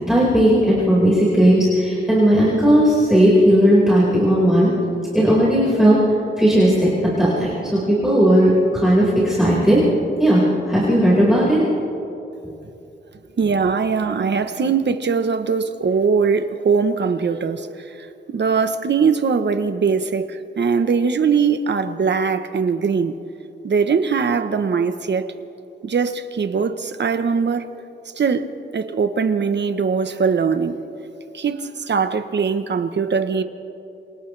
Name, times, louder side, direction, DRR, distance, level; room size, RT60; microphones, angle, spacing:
voice 1, 0.1-4.7 5.1-6.0 6.4-6.9 7.2-9.8 10.2-11.6, equal, ahead, -8 dB, 5.0 m, -16 dB
voice 2, 13.4-17.7 18.0-23.2 23.6-25.3 25.8-27.6 28.2-28.5 28.7-30.8 31.3-33.4, right 5 dB, 65° right, 9 dB, 1.1 m, -21 dB
28.5 x 27.0 x 3.4 m, 2.8 s
wide cardioid pair, 140°, 20 cm